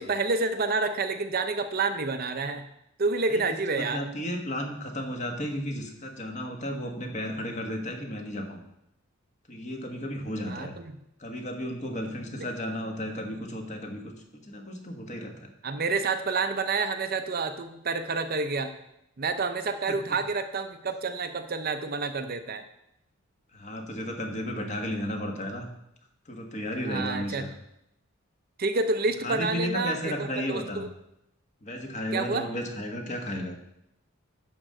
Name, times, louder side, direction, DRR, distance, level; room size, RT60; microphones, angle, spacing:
voice 1, 0.0-2.6 3.0-4.0 10.5-10.9 12.4-12.5 15.6-18.7 19.2-22.7 26.8-27.5 28.6-30.9 32.1-32.5, right 3 dB, 45° right, 8 dB, 0.6 m, -29 dB
voice 2, 3.8-8.6 9.5-10.7 11.2-15.5 19.9-20.2 23.5-25.7 26.3-27.5 29.2-30.9 31.6-33.5, equal, 35° left, 3 dB, 1.3 m, -34 dB
11.0 x 3.8 x 7.6 m, 0.81 s
head